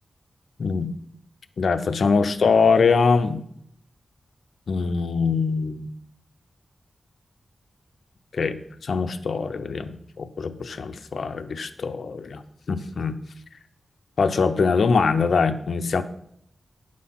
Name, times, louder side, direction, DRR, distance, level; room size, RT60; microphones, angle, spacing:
voice 1, 0.6-0.9 1.6-3.4 4.7-5.9 8.3-12.4 12.7-13.2 14.2-16.0, left 5 dB, 70° left, 10 dB, 0.7 m, -23 dB
10.0 x 6.4 x 5.6 m, 0.73 s
wide cardioid pair, 105°, 0 cm